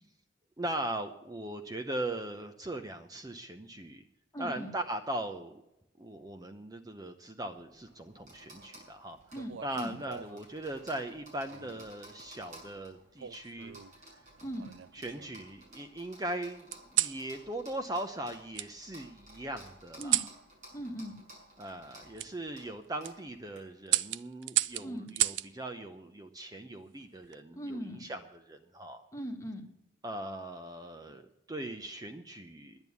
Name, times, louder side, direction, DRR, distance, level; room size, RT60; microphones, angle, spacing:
voice 1, 0.6-4.1 4.4-5.6 6.0-9.2 9.6-13.8 14.9-20.2 21.6-29.0 30.0-32.8, right 1 dB, 20° right, 7 dB, 0.7 m, -39 dB
voice 2, 4.3-4.7 9.3-9.9 14.4-14.7 20.0-20.3 20.7-21.2 24.8-25.1 27.5-28.1 29.1-29.6, equal, 15° left, 2 dB, 1.6 m, -39 dB
sound 1, 7.6-23.6, right 1 dB, 45° right, 6.3 m, -55 dB
sound 2, 9.3-10.5 11.5-11.9 13.2-13.9 14.6-15.5 16.7-17.2 18.5-18.7 20.0-20.4 22.2-22.3 22.8-23.1 23.9-25.5 27.0-27.4, right 14 dB, 80° right, 0.5 m, -33 dB
11.0 x 9.0 x 8.3 m, 0.89 s
head